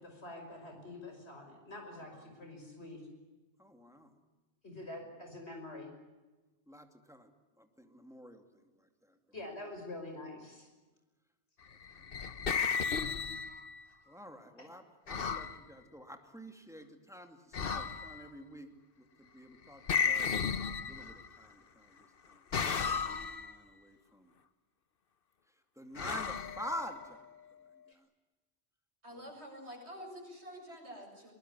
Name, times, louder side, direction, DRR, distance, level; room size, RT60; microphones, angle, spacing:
voice 1, 0.0-3.0 4.6-5.9 9.3-10.7 14.6-14.7, left 2 dB, 75° left, 4 dB, 6.0 m, -46 dB
voice 2, 1.9-2.3 3.6-4.2 6.7-7.3 7.6-9.2 12.0-12.4 14.1-22.4 23.1-24.3 25.8-27.3 27.9-28.1 29.1-29.3, equal, 5° right, 6 dB, 2.4 m, -48 dB
sound 1, 11.8-13.8 15.1-15.6 17.5-18.3 19.9-21.4 22.5-23.5 26.0-27.2, left 6 dB, 55° left, 1.2 m, -34 dB
voice 3, 29.0-31.3, equal, 75° right, 1 dB, 7.6 m, -48 dB
22.5 x 21.0 x 9.9 m, 1.2 s
omnidirectional pair, 1.1 m